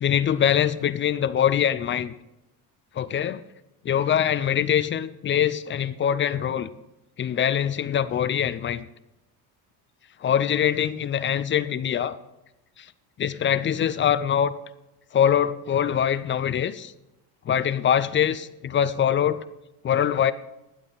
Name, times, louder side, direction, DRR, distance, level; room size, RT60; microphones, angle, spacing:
voice 1, 0.0-2.1 3.0-3.4 3.8-6.7 7.2-8.9 10.2-12.2 13.2-14.5 15.1-16.9 17.5-19.5 19.8-20.3, left 9 dB, 30° left, 15 dB, 0.4 m, -23 dB
12.0 x 9.0 x 4.0 m, 0.94 s
cardioid pair, 110°, 45 cm